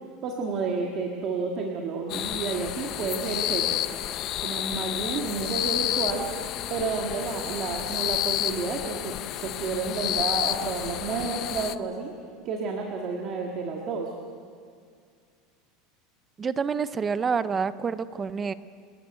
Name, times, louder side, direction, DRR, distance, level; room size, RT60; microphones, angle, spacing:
voice 1, 0.2-3.8 4.4-6.3 6.7-9.2 9.4-12.1 12.4-14.1, right 4 dB, 30° right, 0 dB, 1.8 m, -30 dB
sound 1, 2.1-11.7, left 13 dB, 35° left, 0.6 m, -30 dB
voice 2, 16.4-18.5, right 5 dB, 15° right, 14 dB, 0.5 m, -27 dB
30.0 x 13.0 x 8.1 m, 2.1 s
supercardioid pair, 180°, 0 cm